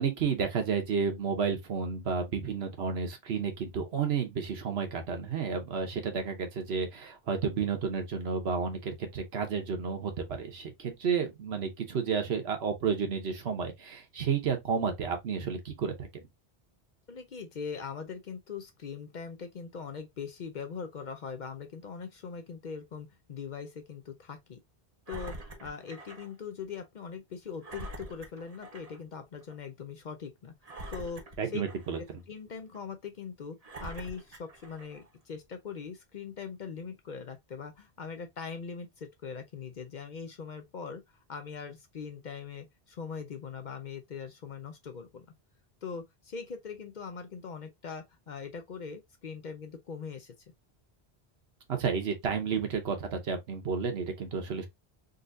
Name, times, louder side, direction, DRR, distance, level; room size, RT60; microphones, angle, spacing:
voice 1, 0.0-16.2 31.4-32.0 51.8-54.7, right 6 dB, 75° right, 1.1 m, -31 dB
voice 2, 17.1-24.6 25.1-30.5 30.9-31.2 31.5-31.6 32.0-41.0 41.3-45.3 45.8-50.3, left 6 dB, 55° left, 0.6 m, -41 dB
Engine, 25.1-26.3 26.7-26.8 27.6-29.0 29.4-29.5 30.6-32.1 32.7-32.8 33.6-35.1 35.8-35.9, right 1 dB, 40° right, 0.9 m, -45 dB
3.9 x 2.7 x 2.4 m
omnidirectional pair, 1.1 m